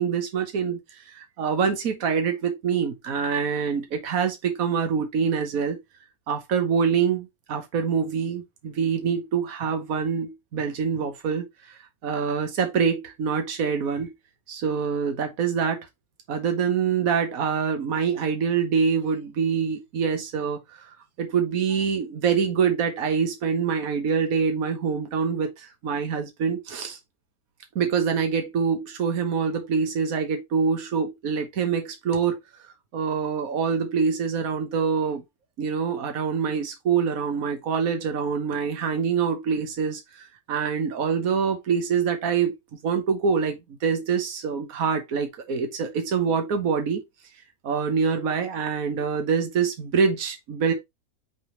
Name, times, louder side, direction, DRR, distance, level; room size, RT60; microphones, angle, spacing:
voice 1, 0.0-5.8 6.3-14.1 14.5-15.9 16.3-20.6 21.2-27.0 27.7-32.4 32.9-35.2 35.6-42.6 42.8-47.0 47.6-50.7, right 6 dB, 75° right, 1.6 m, -25 dB
6.1 x 3.5 x 4.5 m
omnidirectional pair, 1.5 m